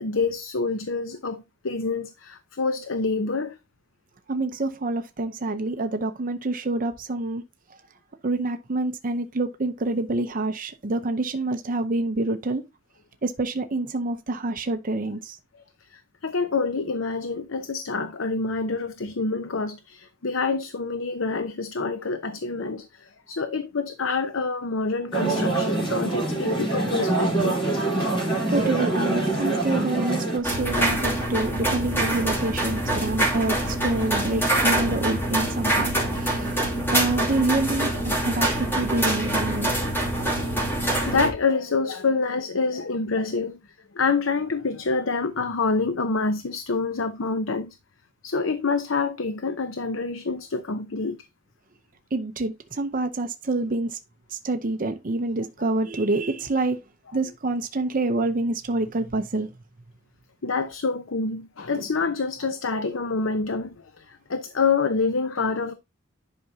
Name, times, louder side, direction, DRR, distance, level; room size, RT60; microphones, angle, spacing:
voice 1, 0.0-3.6 16.2-27.6 40.4-43.6 43.9-47.7 48.2-51.2 60.4-65.7, left 4 dB, 80° left, 0.8 m, -27 dB
voice 2, 4.3-7.4 8.2-12.6 13.2-15.4 28.5-36.5 36.9-39.7 52.1-54.0 54.3-56.8 57.1-59.5 61.7-61.8, right 2 dB, 45° right, 0.7 m, -27 dB
sound 1, 25.1-30.4, right 2 dB, 25° left, 4.1 m, -24 dB
sound 2, 30.4-41.3, right 1 dB, 10° left, 2.5 m, -25 dB
11.0 x 5.9 x 2.8 m
head